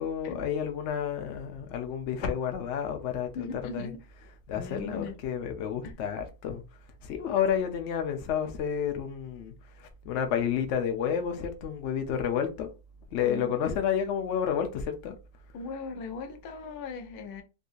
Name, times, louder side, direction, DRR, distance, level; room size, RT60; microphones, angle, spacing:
voice 1, 0.0-3.5 3.7-3.9 4.5-6.6 7.0-9.5 9.8-12.7 13.1-15.2, left 8 dB, 60° left, 0.8 m, -30 dB
voice 2, 3.3-4.0 4.5-5.2 5.8-5.9 13.2-13.7 15.5-17.4, left 4 dB, 90° left, 1.2 m, -38 dB
3.7 x 2.7 x 2.4 m
omnidirectional pair, 1.6 m